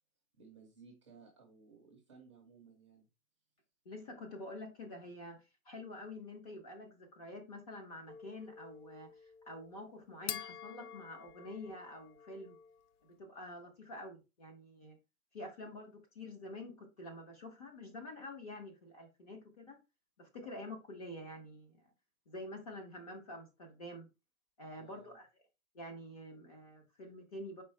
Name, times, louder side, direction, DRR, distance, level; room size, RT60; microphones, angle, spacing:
voice 1, 0.3-3.1 24.7-25.2, right 5 dB, 20° right, 0.5 m, -59 dB
voice 2, 3.8-5.4 5.6-12.6 13.0-15.0 15.3-19.8 20.2-21.8 22.3-24.1 24.6-25.3 25.7-27.6, left 1 dB, 25° left, 0.7 m, -48 dB
sound 1, 8.1-12.9, left 9 dB, 80° left, 0.7 m, -48 dB
4.6 x 3.5 x 3.1 m
hypercardioid pair, 170°, 44 cm